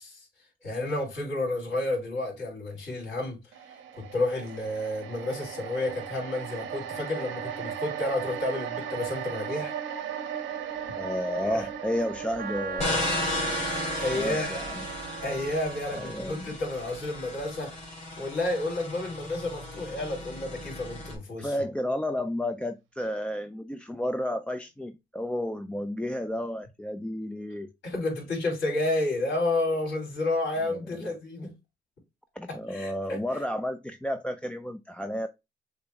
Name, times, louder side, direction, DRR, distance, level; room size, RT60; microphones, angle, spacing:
voice 1, 0.6-3.4 3.9-9.7 11.4-11.6 14.0-14.5 15.2-17.9 18.2-21.5 27.8-31.5 32.5-33.2, left 2 dB, 65° left, 3.1 m, -31 dB
sound 1, 3.5-17.9 18.2-18.4, right 9 dB, 75° right, 0.9 m, -38 dB
voice 2, 11.0-13.2 14.1-14.9 15.9-16.5 21.4-27.7 30.7-30.8 32.4-35.3, left 1 dB, 5° left, 0.4 m, -32 dB
Wind instrument woodwind instrument, 12.4-16.2, right 7 dB, 45° right, 0.5 m, -37 dB
sound 2, 12.8-21.2, left 2 dB, 35° left, 2.3 m, -35 dB
6.6 x 2.6 x 3.1 m
cardioid pair, 90°, 20 cm